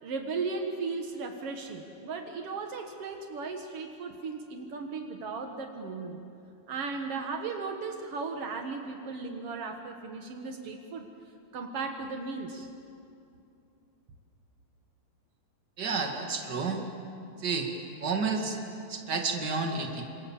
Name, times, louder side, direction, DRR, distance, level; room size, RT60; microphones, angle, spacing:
voice 1, 0.0-6.3 6.7-11.1 11.5-12.7, right 4 dB, 85° right, 4 dB, 1.3 m, -36 dB
voice 2, 15.8-16.8 17.4-17.7 18.0-18.6 18.9-20.0, right 4 dB, 35° right, 3 dB, 1.9 m, -30 dB
28.0 x 26.0 x 7.4 m, 2.6 s
omnidirectional pair, 5.0 m